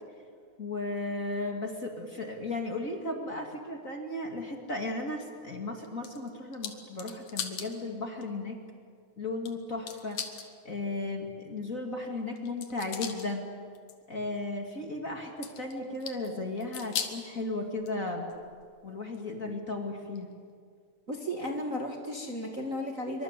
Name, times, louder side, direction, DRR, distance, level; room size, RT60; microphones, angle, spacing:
voice 1, 0.6-8.6 9.2-10.2 10.6-13.5 14.1-18.3 18.8-20.3, left 2 dB, 30° left, 2 dB, 2.5 m, -35 dB
sound 1, 5.8-7.7 8.2-8.3 9.5-9.6 9.9-10.5 12.4-13.3 13.8-14.0 15.4-16.3 16.6-17.2 17.8-18.7 19.1-19.2 20.2-20.3, left 7 dB, 80° left, 3.2 m, -38 dB
voice 2, 21.1-23.2, equal, 30° right, 1 dB, 2.0 m, -34 dB
26.0 x 24.5 x 8.4 m, 2.1 s
omnidirectional pair, 3.3 m